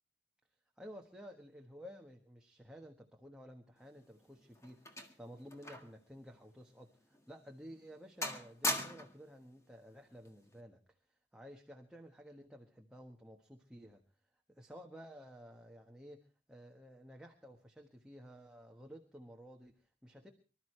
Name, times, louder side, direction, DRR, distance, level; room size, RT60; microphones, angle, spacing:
voice 1, 0.8-10.8 11.1-14.0 14.5-20.3, equal, 5° right, 1 dB, 1.4 m, -53 dB
sound 1, 3.9-6.0 6.3-6.5 7.1-7.3 7.7-8.0 8.2-9.3 10.3-10.5, left 2 dB, 15° left, 1.7 m, -40 dB
25.0 x 13.0 x 3.3 m, 0.35 s
head